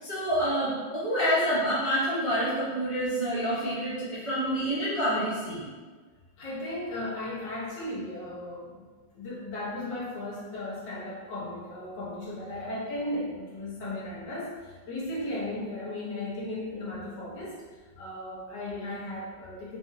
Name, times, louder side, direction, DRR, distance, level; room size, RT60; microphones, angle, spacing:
voice 1, 0.0-5.7, equal, 35° right, -11 dB, 0.5 m, -27 dB
voice 2, 6.4-8.9 9.1-17.6 18.0-19.8, left 1 dB, 70° left, -6 dB, 1.5 m, -36 dB
4.0 x 2.5 x 2.6 m, 1.4 s
omnidirectional pair, 2.0 m